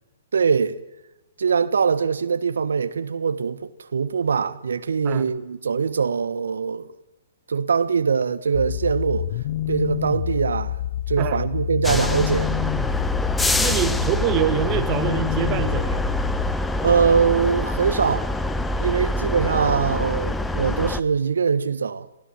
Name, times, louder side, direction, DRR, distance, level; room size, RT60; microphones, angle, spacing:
voice 1, 0.3-0.8 1.4-6.9 7.5-9.3 9.7-10.8 11.1-12.5 16.8-18.3 18.8-22.1, right 6 dB, 70° right, 1.3 m, -22 dB
sound 1, 8.5-16.5, left 12 dB, 45° left, 0.7 m, -28 dB
voice 2, 11.2-11.5 13.6-16.0 19.6-19.7, right 11 dB, 30° right, 1.8 m, -25 dB
sound 2, 11.8-21.0, left 1 dB, 5° left, 0.8 m, -25 dB
29.0 x 16.0 x 7.4 m
figure-of-eight pair, 120°, 0 cm